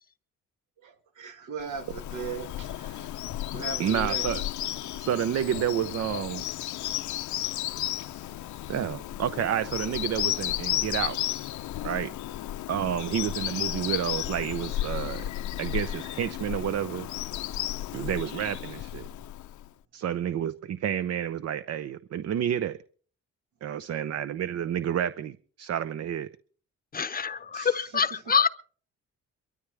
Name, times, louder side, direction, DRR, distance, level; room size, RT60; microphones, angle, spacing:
voice 1, 0.8-3.2 3.5-4.3 12.8-13.0 27.5-28.2, right 6 dB, 75° right, 1.9 m, -39 dB
Bird vocalization bird call bird song, 1.7-19.7, left 13 dB, 75° left, 0.7 m, -33 dB
voice 2, 3.8-4.4 5.0-6.4 8.7-11.2 11.8-12.1 12.7-15.2 15.6-17.1 17.9-19.1 19.9-22.8 23.6-26.3, right 9 dB, 55° right, 0.7 m, -30 dB
voice 3, 26.9-28.5, left 6 dB, 30° left, 0.7 m, -25 dB
23.0 x 13.0 x 3.4 m
cardioid pair, 90°, 30 cm